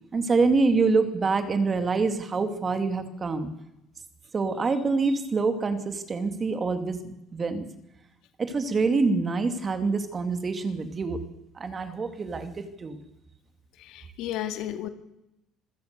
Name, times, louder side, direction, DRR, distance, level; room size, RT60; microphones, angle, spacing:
voice 1, 0.1-3.5 4.3-7.7 8.4-11.2 11.6-13.0, right 4 dB, 25° right, 9 dB, 2.5 m, -26 dB
voice 2, 13.8-14.9, left 12 dB, 70° left, 8 dB, 2.1 m, -33 dB
26.5 x 16.5 x 6.9 m, 0.86 s
cardioid pair, 150°, 0 cm